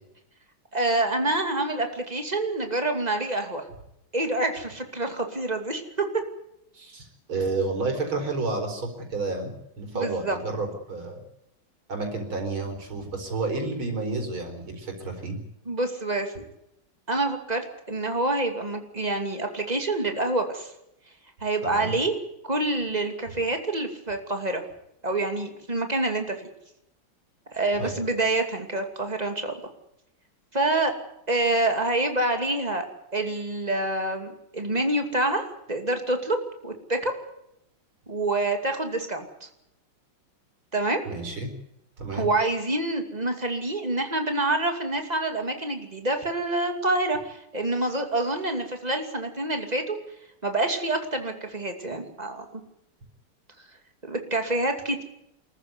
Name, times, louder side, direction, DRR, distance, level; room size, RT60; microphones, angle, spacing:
voice 1, 0.7-3.7 4.1-6.1 9.9-10.4 15.7-16.4 17.1-20.7 21.4-22.1 22.5-24.6 25.0-26.4 27.5-29.5 30.5-30.9 31.3-32.9 33.1-35.4 35.7-36.4 36.6-37.1 38.1-39.3 40.7-41.0 42.1-50.0 50.4-52.6 54.0-55.0, right 2 dB, 20° right, 5 dB, 2.6 m, -27 dB
voice 2, 6.7-11.2 11.9-15.4 21.6-22.0 27.8-27.9 41.1-41.5 42.0-42.3, right 3 dB, 85° right, 4 dB, 5.2 m, -30 dB
25.5 x 14.0 x 9.7 m, 0.81 s
omnidirectional pair, 2.2 m